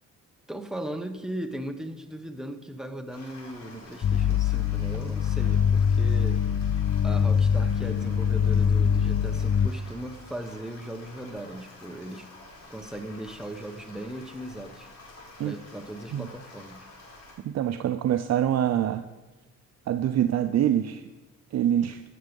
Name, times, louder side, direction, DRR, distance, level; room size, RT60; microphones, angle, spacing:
voice 1, 0.5-6.4 7.0-12.3 12.7-14.9 15.4-16.9, right 1 dB, ahead, 6 dB, 1.1 m, -38 dB
sound 1, 3.1-17.3, left 2 dB, 60° left, 5.1 m, -49 dB
sound 2, 4.0-9.7, left 7 dB, 40° left, 0.5 m, -23 dB
voice 2, 17.4-19.0 19.9-21.0 21.5-22.0, right 10 dB, 60° right, 9 dB, 0.6 m, -25 dB
16.0 x 7.5 x 5.4 m, 1.1 s
cardioid pair, 90°, 30 cm